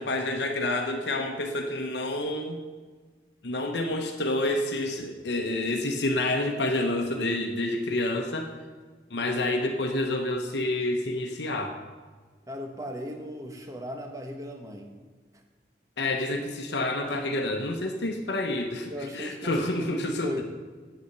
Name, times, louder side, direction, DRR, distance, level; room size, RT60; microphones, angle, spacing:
voice 1, 0.0-2.6 3.4-8.5 9.1-11.7 16.0-20.3, left 1 dB, 75° left, 3 dB, 0.9 m, -28 dB
voice 2, 12.5-15.0 15.3-15.4 18.9-20.4, left 1 dB, 20° right, 4 dB, 1.1 m, -37 dB
9.2 x 8.2 x 6.8 m, 1.5 s
head